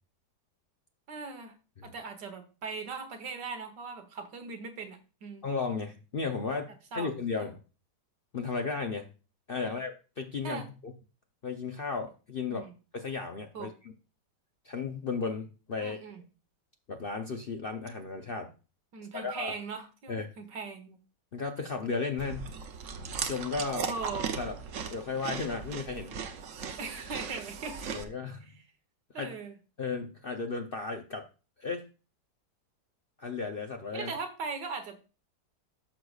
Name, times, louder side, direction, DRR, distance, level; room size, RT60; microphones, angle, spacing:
voice 1, 1.1-1.5 1.8-5.5 6.9-7.1 9.6-9.8 10.4-10.7 12.5-12.7 13.5-13.7 15.8-16.2 18.9-21.0 23.8-24.5 26.8-28.0 29.1-29.5 33.9-35.1, right 4 dB, 85° right, 6 dB, 1.9 m, -39 dB
voice 2, 5.4-7.6 8.3-9.1 9.5-10.9 11.4-12.6 12.9-13.9 14.6-16.0 16.9-18.5 19.1-19.5 20.1-20.3 21.3-22.5 23.3-23.9 24.4-24.6 24.9-26.2 27.9-28.4 29.2-29.3 29.8-31.3 31.6-31.9 33.2-34.1, left 4 dB, 50° left, 4 dB, 0.6 m, -34 dB
Chewing mastication, 22.2-28.0, right 6 dB, 55° right, 1.0 m, -37 dB
13.5 x 6.5 x 2.4 m, 0.33 s
omnidirectional pair, 1.8 m